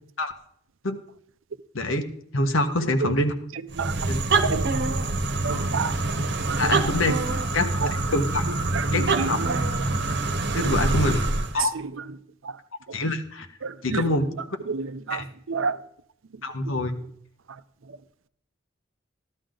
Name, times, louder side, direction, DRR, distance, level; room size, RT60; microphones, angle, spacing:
voice 1, 2.3-3.3 4.1-4.2 5.5-5.7 6.6-7.1 7.5-7.7 8.1-8.4 8.9-9.4 10.5-11.2 11.5-11.7 12.9-13.5 13.8-14.2 15.1-15.2 16.4-16.9, left 1 dB, 80° left, 1.4 m, -25 dB
sound 1, 3.7-11.6, right 2 dB, 55° right, 1.1 m, -25 dB
voice 2, 5.4-5.9 6.5-6.6 7.8-7.9 8.7-9.6 10.6-10.7 13.6-14.0 14.7-15.8, right 4 dB, 75° right, 0.6 m, -29 dB
15.0 x 12.5 x 3.9 m
head